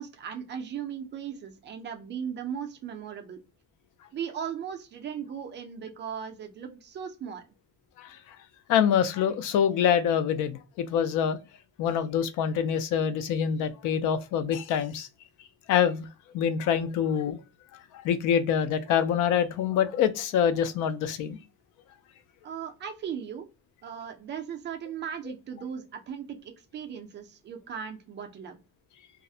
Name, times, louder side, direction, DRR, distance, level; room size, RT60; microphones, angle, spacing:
voice 1, 0.0-3.4 4.1-7.4 22.4-23.5 23.8-28.6, right 8 dB, 35° right, 0.4 m, -37 dB
voice 2, 8.7-11.4 11.8-15.1 15.7-16.1 16.3-17.4 17.9-21.4, left 8 dB, 60° left, 0.4 m, -25 dB
2.3 x 2.0 x 2.6 m
cardioid pair, 175°, 34 cm